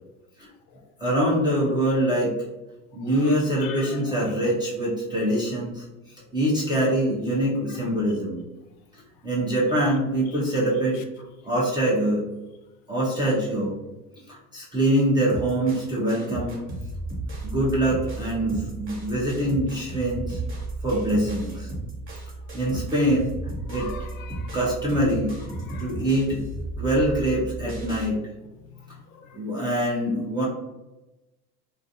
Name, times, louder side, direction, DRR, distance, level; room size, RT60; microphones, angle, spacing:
voice 1, 1.0-2.4 2.9-5.8 6.3-8.4 9.2-11.0 11.4-12.2 12.9-13.8 14.3-16.5 17.4-20.4 20.8-21.7 22.5-23.3 23.7-24.1 24.5-25.3 25.8-26.4 26.8-28.2 29.3-30.4, right 1 dB, 10° right, 0.3 m, -24 dB
voice 2, 3.6-4.1 23.7-24.6 25.6-25.9 26.7-26.8 28.8-29.4, left 7 dB, 65° left, 0.5 m, -43 dB
sound 1, 15.3-28.1, right 2 dB, 25° right, 1.0 m, -34 dB
2.4 x 2.4 x 2.6 m
supercardioid pair, 105°, 45 cm